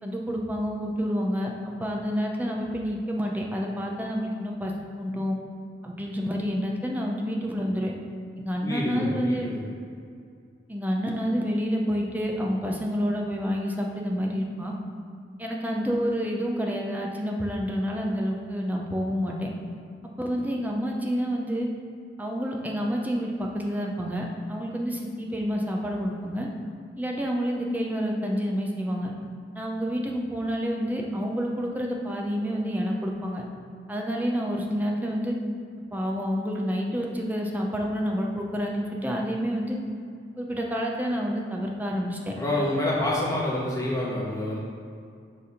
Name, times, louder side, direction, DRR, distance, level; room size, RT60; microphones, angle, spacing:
voice 1, 0.0-5.4 5.8-7.9 8.4-9.5 10.7-14.7 15.4-19.5 20.2-21.7 22.2-26.5 27.0-29.1 29.5-33.4 33.9-35.4 35.9-39.8 40.4-42.4, equal, 10° right, -1 dB, 0.6 m, -28 dB
voice 2, 8.6-9.6 42.3-44.6, left 1 dB, 15° left, -7 dB, 1.4 m, -27 dB
6.5 x 3.4 x 5.6 m, 2.4 s
head